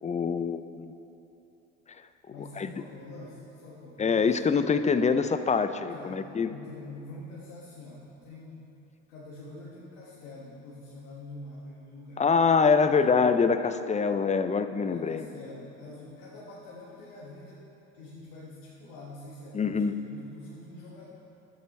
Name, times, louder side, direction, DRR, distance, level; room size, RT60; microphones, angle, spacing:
voice 1, 0.0-0.9 2.6-2.7 4.0-6.5 12.2-15.3 19.5-19.9, left 5 dB, 20° left, 11 dB, 0.4 m, -25 dB
voice 2, 2.3-4.4 5.9-6.2 6.5-8.6 9.1-12.2 12.7-13.0 14.8-17.6 17.9-21.1, left 2 dB, 80° left, -6 dB, 1.3 m, -45 dB
11.5 x 7.4 x 4.2 m, 2.9 s
hypercardioid pair, 65°, 35 cm